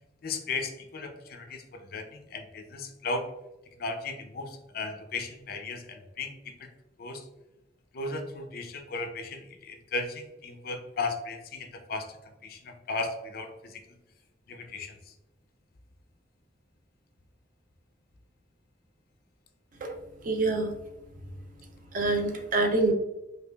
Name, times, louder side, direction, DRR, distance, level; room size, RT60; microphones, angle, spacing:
voice 1, 0.2-3.3 3.8-6.7 7.0-7.2 7.9-12.1 12.4-13.8 14.5-14.9, left 3 dB, 55° left, 5 dB, 0.5 m, -36 dB
voice 2, 19.8-20.8 21.9-22.9, right 2 dB, 50° right, 4 dB, 0.5 m, -26 dB
4.9 x 2.4 x 2.2 m, 0.97 s
head